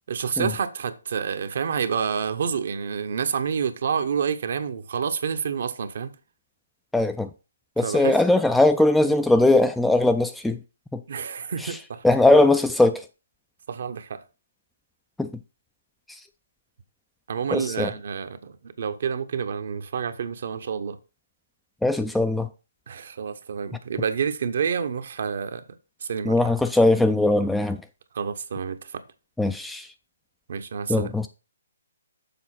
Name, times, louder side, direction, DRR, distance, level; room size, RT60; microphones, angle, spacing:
voice 1, 0.1-6.1 7.8-8.2 9.0-9.1 11.1-12.0 13.7-14.2 17.3-21.0 22.9-25.7 26.0-26.4 28.1-29.0 30.5-31.1, right 6 dB, 55° right, 0.8 m, -28 dB
voice 2, 6.9-7.3 7.8-10.6 10.9-11.0 12.0-13.0 15.2-15.3 17.5-17.9 21.8-22.5 26.3-27.8 29.4-29.9 30.9-31.3, left 2 dB, 5° left, 0.4 m, -20 dB
7.0 x 3.9 x 5.8 m
figure-of-eight pair, 135°, 0 cm